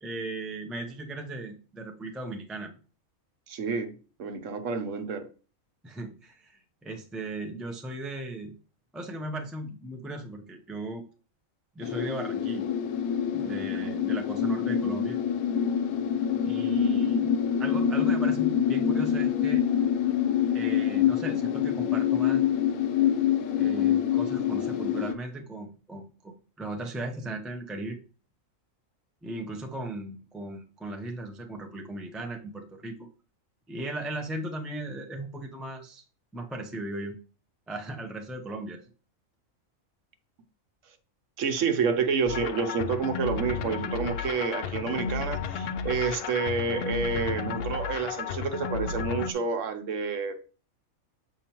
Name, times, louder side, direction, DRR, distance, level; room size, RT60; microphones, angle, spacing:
voice 1, 0.0-2.7 5.8-8.5 8.9-11.0 11.7-12.7 13.3-15.2 16.4-19.6 20.5-22.4 23.6-28.0 29.2-33.0 33.7-36.0 36.3-37.2 37.7-38.8, right 2 dB, ahead, 0.4 m, -37 dB
voice 2, 3.5-5.3 13.4-14.1 41.4-50.4, right 5 dB, 65° right, 1.1 m, -29 dB
sound 1, 11.8-25.1, left 9 dB, 85° left, 1.1 m, -26 dB
sound 2, 42.3-49.3, left 6 dB, 65° left, 0.6 m, -33 dB
7.2 x 5.1 x 3.0 m
omnidirectional pair, 1.4 m